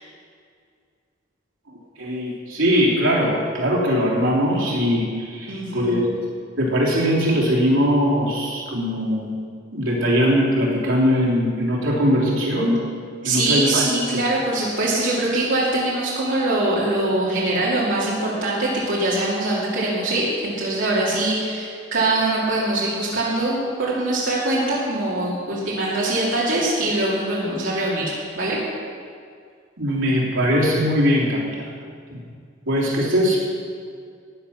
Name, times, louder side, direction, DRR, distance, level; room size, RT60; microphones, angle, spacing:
voice 1, 2.0-6.1 6.6-9.4 9.7-12.8 13.2-13.8 29.8-31.6 32.1-32.2 32.7-33.4, equal, 85° right, -4 dB, 3.2 m, -20 dB
voice 2, 5.5-6.0 13.2-28.6, right 2 dB, 70° right, -7 dB, 2.7 m, -23 dB
14.5 x 9.6 x 5.8 m, 2.2 s
head